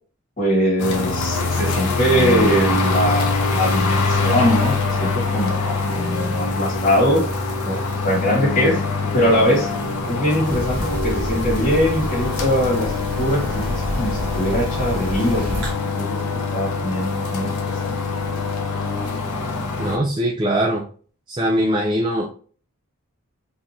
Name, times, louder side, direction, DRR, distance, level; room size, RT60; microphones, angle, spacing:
voice 1, 0.4-7.3 7.6-8.8 9.1-9.7 10.0-15.7 16.0-18.0, equal, 35° left, -5 dB, 1.9 m, -22 dB
sound 1, 0.8-20.0, left 3 dB, 90° left, 0.8 m, -24 dB
sound 2, 10.4-15.7, equal, 55° right, 1.4 m, -29 dB
voice 2, 19.8-20.8 21.3-22.3, equal, 20° right, 0 dB, 0.3 m, -21 dB
4.1 x 2.6 x 3.0 m, 0.42 s
head